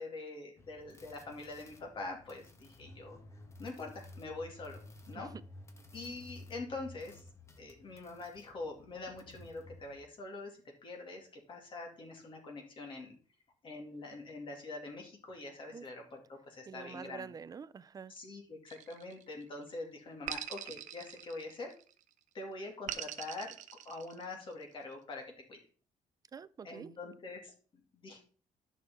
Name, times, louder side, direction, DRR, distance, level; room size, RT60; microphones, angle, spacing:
voice 1, 0.0-3.2 3.6-4.8 5.1-5.3 5.9-7.2 7.6-13.1 13.6-17.3 18.1-21.7 22.3-23.5 23.8-25.6 26.6-28.2, left 3 dB, 40° left, 2.6 m, -44 dB
sound 1, 0.6-10.0, left 2 dB, 20° left, 1.2 m, -54 dB
voice 2, 16.7-18.1 26.3-26.9, right 6 dB, 30° right, 0.4 m, -46 dB
sound 2, 18.7-19.5 20.3-21.9 22.9-24.5, right 11 dB, 75° right, 0.8 m, -43 dB
10.5 x 6.5 x 3.8 m
cardioid pair, 140°, 13 cm